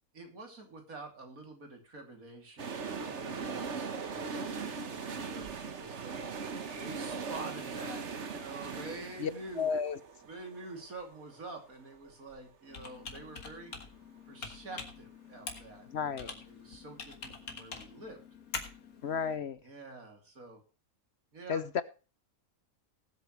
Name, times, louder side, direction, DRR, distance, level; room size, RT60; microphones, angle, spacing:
voice 1, 0.1-6.3 6.7-9.7 10.2-13.7 14.2-15.9 16.1-18.2 19.3-20.6 21.3-21.6, right 2 dB, 75° right, 3.4 m, -47 dB
sound 1, 2.6-12.4 12.7-12.8, right 5 dB, 55° right, 1.5 m, -40 dB
voice 2, 9.6-10.0 15.9-16.3 19.0-19.6 21.5-21.8, left 6 dB, 55° left, 0.9 m, -32 dB
Computer keyboard, 12.7-19.4, left 4 dB, 90° left, 2.4 m, -45 dB
19.5 x 8.2 x 3.2 m
omnidirectional pair, 1.5 m